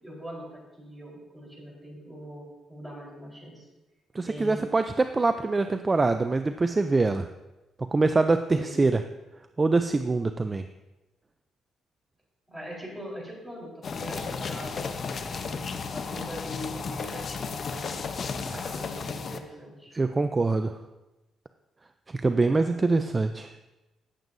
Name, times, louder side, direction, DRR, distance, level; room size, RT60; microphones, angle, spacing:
voice 1, 0.0-3.7 4.2-4.7 8.5-9.0 12.5-19.9 22.3-23.0, equal, ahead, -4 dB, 4.0 m, -42 dB
voice 2, 4.1-7.3 7.9-9.0 9.6-10.6 18.5-18.6 19.9-20.7 22.1-23.5, right 3 dB, 25° right, 9 dB, 0.4 m, -24 dB
sound 1, 13.8-19.4, left 5 dB, 50° left, 0.7 m, -34 dB
16.5 x 7.8 x 2.7 m, 1.1 s
cardioid pair, 90°, 0 cm